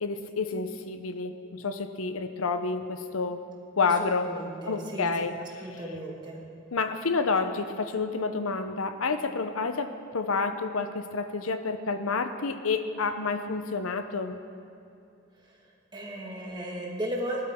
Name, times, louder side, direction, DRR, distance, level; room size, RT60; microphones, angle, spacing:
voice 1, 0.0-3.4 3.8-4.3 4.7-5.8 6.7-14.4, left 4 dB, 90° left, 9 dB, 0.8 m, -29 dB
voice 2, 3.8-5.3 5.6-6.4 15.9-17.4, right 1 dB, 20° right, -2 dB, 1.8 m, -35 dB
19.0 x 12.0 x 3.7 m, 2.7 s
head